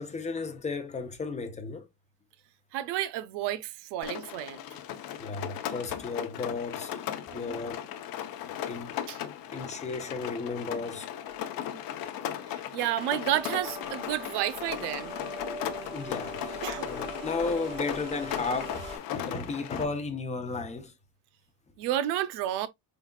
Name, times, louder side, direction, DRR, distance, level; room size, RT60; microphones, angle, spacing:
voice 1, 0.0-1.9 5.0-7.1 7.3-8.0 8.7-9.0 9.5-11.1 15.8-20.9, left 4 dB, 15° left, 0.7 m, -34 dB
voice 2, 2.7-4.6 7.3-7.6 9.1-9.2 11.7-11.8 12.5-15.2 16.6-16.9 21.8-22.7, right 12 dB, 90° right, 0.7 m, -31 dB
Rain, 4.0-19.8, left 10 dB, 60° left, 0.8 m, -37 dB
sound 1, 13.1-19.0, right 2 dB, 15° right, 3.3 m, -42 dB
4.8 x 3.9 x 2.3 m
cardioid pair, 145°, 40 cm